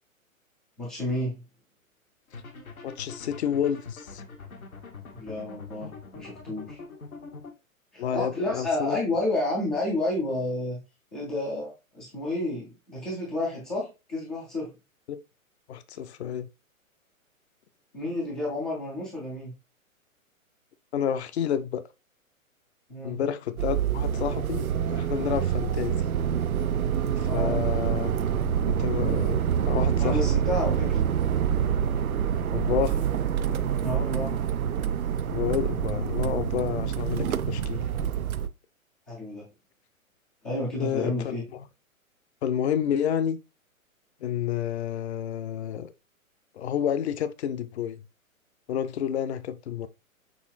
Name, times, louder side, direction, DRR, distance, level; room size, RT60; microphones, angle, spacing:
voice 1, 0.8-1.4 5.1-6.8 7.9-10.8 11.1-14.7 17.9-19.5 22.9-23.2 27.2-27.7 30.0-31.0 33.8-34.4 39.1-39.5 40.4-41.4, left 1 dB, 5° left, 0.3 m, -30 dB
sound 1, 2.3-7.5, left 4 dB, 80° left, 1.2 m, -43 dB
voice 2, 2.8-4.2 8.0-9.0 15.1-15.2 15.7-16.5 20.9-21.8 23.0-26.0 27.2-28.1 28.7-30.2 32.5-33.0 35.3-37.9 40.8-41.3 42.4-43.4 44.2-45.9 46.6-48.0 48.7-49.9, left 9 dB, 50° left, 0.6 m, -29 dB
sound 2, 23.6-38.5, right 8 dB, 80° right, 0.5 m, -26 dB
6.2 x 2.7 x 3.1 m
figure-of-eight pair, 120°, 42 cm